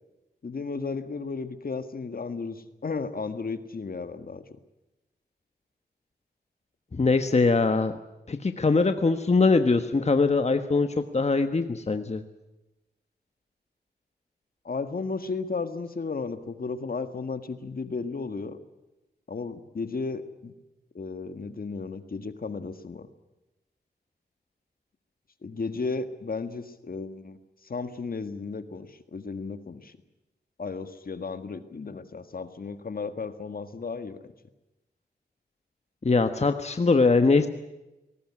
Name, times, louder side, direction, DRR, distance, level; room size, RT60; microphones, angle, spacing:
voice 1, 0.4-4.4 14.6-18.6 19.3-20.5 20.9-23.1 25.4-27.4 27.6-30.0 30.6-34.3, left 4 dB, 55° left, 10 dB, 1.8 m, -34 dB
voice 2, 6.9-8.0 8.3-12.2 36.0-37.5, left 3 dB, 40° left, 8 dB, 1.4 m, -22 dB
20.0 x 18.5 x 9.8 m, 0.98 s
cardioid pair, 65°, 18 cm